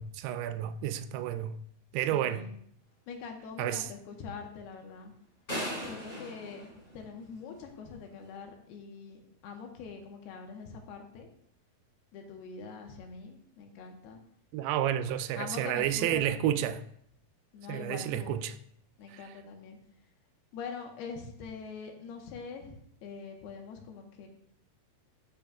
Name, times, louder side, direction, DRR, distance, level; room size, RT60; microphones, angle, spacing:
voice 1, 0.0-1.6 1.9-2.5 3.6-3.9 14.5-16.8 17.7-18.5 19.1-19.3, right 11 dB, 85° right, 2.6 m, -31 dB
voice 2, 2.1-2.6 3.1-5.1 5.8-6.7 6.9-11.3 12.1-14.2 15.4-16.6 17.5-18.4 19.0-19.8 20.5-24.3, left 5 dB, 85° left, 3.0 m, -44 dB
sound 1, 5.5-7.6, equal, 20° left, 4.0 m, -38 dB
13.5 x 6.9 x 2.3 m
omnidirectional pair, 4.6 m